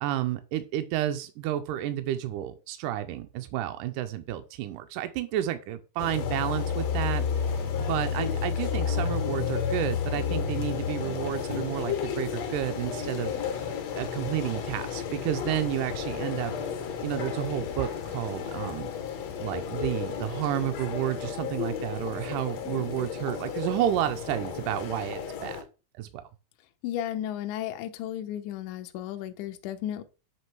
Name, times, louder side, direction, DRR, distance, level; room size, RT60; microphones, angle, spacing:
voice 1, 0.0-13.6 13.9-16.5 17.0-18.9 19.4-25.7 25.9-26.2, right 12 dB, 85° right, 1.8 m, -31 dB
sound 1, 6.0-25.6, left 7 dB, 65° left, 1.7 m, -32 dB
voice 2, 26.8-30.0, left 11 dB, 80° left, 1.7 m, -34 dB
7.8 x 3.0 x 4.5 m
omnidirectional pair, 4.1 m